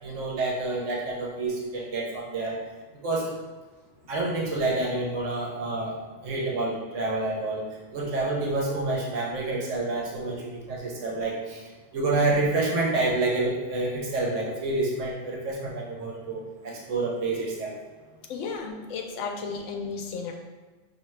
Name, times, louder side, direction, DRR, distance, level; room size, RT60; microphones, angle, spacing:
voice 1, 0.0-2.6 3.0-3.3 4.1-6.0 6.2-11.6 11.9-17.8, right 2 dB, 85° right, -2 dB, 1.1 m, -28 dB
voice 2, 18.3-20.3, left 5 dB, 85° left, 1 dB, 1.0 m, -33 dB
5.7 x 2.7 x 3.1 m, 1.3 s
omnidirectional pair, 1.2 m